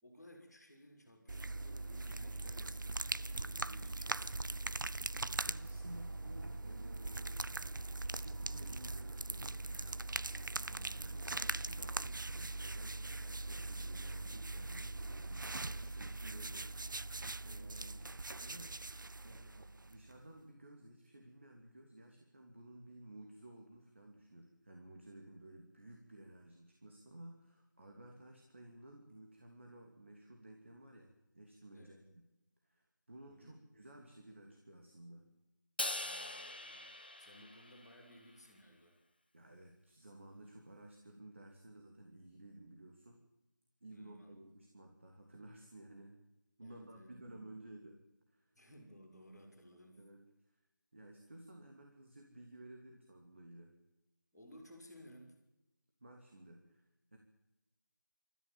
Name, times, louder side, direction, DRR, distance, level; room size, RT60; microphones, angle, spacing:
voice 1, 0.0-4.6 10.6-11.0 17.7-17.9 31.7-32.0 33.3-33.6 36.0-39.0 43.9-44.4 46.6-47.5 48.5-50.0 54.3-55.3, equal, ahead, -18 dB, 2.7 m, -59 dB
sound 1, 1.3-20.2, right 2 dB, 80° right, 0.7 m, -41 dB
voice 2, 5.1-7.5 8.0-10.0 10.6-18.0 18.4-18.8 19.2-32.2 32.6-35.2 39.3-43.3 43.8-46.1 46.6-48.0 48.3-48.5 50.0-50.2 50.9-53.7 56.0-56.8 57.1-57.2, right 1 dB, 35° right, 2 dB, 2.8 m, -55 dB
Crash cymbal, 35.8-38.2, left 2 dB, 30° left, 0.8 m, -42 dB
25.5 x 14.0 x 9.3 m, 0.95 s
figure-of-eight pair, 180°, 11 cm